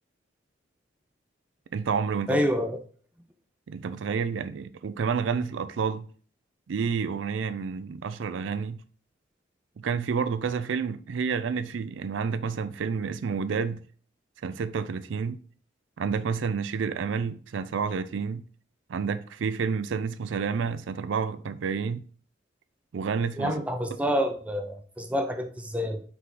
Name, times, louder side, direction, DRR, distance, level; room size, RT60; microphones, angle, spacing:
voice 1, 1.7-2.4 3.7-6.1 6.7-8.8 9.8-13.8 14.4-15.4 16.0-18.5 18.9-22.1 22.9-23.5, right 5 dB, 70° right, 0.4 m, -29 dB
voice 2, 2.3-2.8 23.4-26.0, equal, 5° right, 0.6 m, -27 dB
5.9 x 4.7 x 3.8 m
head